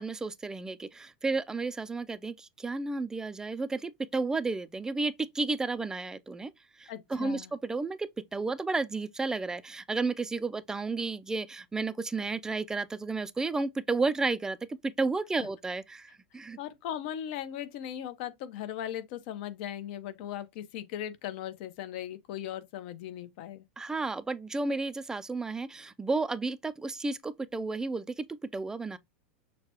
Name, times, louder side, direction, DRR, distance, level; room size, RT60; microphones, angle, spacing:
voice 1, 0.0-6.5 6.8-16.6 23.8-29.0, right 3 dB, 10° right, 0.4 m, -32 dB
voice 2, 6.9-7.5 16.6-23.6, left 11 dB, 60° left, 0.8 m, -38 dB
6.5 x 2.2 x 2.9 m
hypercardioid pair, 120°, 6 cm